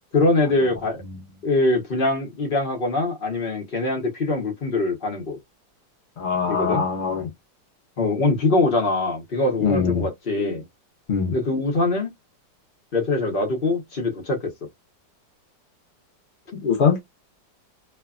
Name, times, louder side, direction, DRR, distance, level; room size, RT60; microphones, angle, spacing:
voice 1, 0.1-1.0 1.4-5.4 6.5-6.8 8.0-10.6 11.3-12.1 12.9-14.4, left 2 dB, 40° left, 0.8 m, -23 dB
voice 2, 6.2-7.3 9.6-10.1 11.1-11.3 16.6-17.0, left 6 dB, 65° left, 0.5 m, -23 dB
3.3 x 2.2 x 2.3 m
omnidirectional pair, 2.0 m